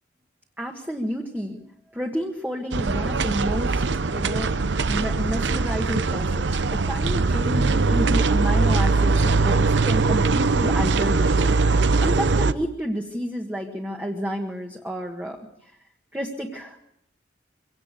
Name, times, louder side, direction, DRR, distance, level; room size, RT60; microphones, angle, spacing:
voice 1, 0.6-1.6 1.9-3.8 4.1-4.5 4.9-11.5 12.0-15.7 16.1-16.9, equal, 10° right, 0 dB, 1.6 m, -30 dB
sound 1, 2.7-12.5, right 3 dB, 75° right, 0.7 m, -21 dB
24.5 x 18.0 x 6.7 m, 0.77 s
head